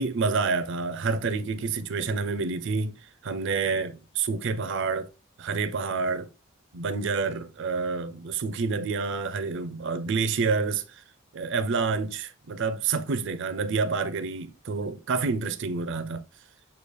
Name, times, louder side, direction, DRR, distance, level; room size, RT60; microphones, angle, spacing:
voice 1, 0.0-3.0 3.2-5.1 5.4-6.3 6.7-11.0 11.3-16.2, right 4 dB, 60° right, 0.5 m, -28 dB
6.7 x 2.3 x 3.2 m
head